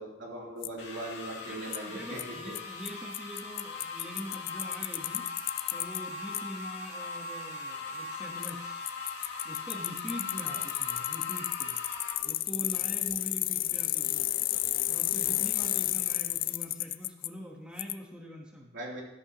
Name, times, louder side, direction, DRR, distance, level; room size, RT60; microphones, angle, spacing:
voice 1, 0.0-2.5 10.4-10.6 18.7-19.0, right 1 dB, 80° right, -3 dB, 3.2 m, -40 dB
Bicycle, 0.6-0.7 1.7-1.8 2.2-2.3 2.6-2.7 2.9-3.0 3.1-6.0 6.3-6.4 8.4-8.5 8.9-17.3 17.8-17.9, left 16 dB, 45° left, 0.3 m, -31 dB
sound 1, 0.8-12.1, left 4 dB, 65° left, 2.3 m, -40 dB
voice 2, 1.5-5.3 5.7-8.8 9.4-11.8 12.2-14.2 14.8-18.7, equal, 5° right, -1 dB, 1.2 m, -43 dB
13.0 x 11.0 x 3.0 m, 0.91 s
head